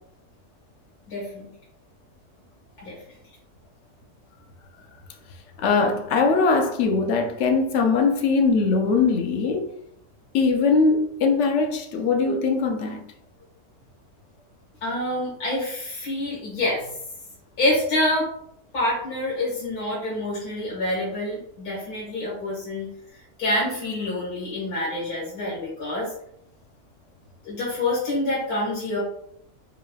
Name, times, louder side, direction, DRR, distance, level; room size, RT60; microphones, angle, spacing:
voice 1, 1.1-1.5 2.8-3.0 14.8-17.0 17.6-18.3 18.7-22.9 23.1-26.1 27.4-29.0, left 1 dB, 80° left, 2.1 m, -27 dB
voice 2, 5.6-9.7 10.3-13.0, left 4 dB, 65° left, 0.7 m, -21 dB
4.9 x 3.2 x 2.3 m
omnidirectional pair, 1.6 m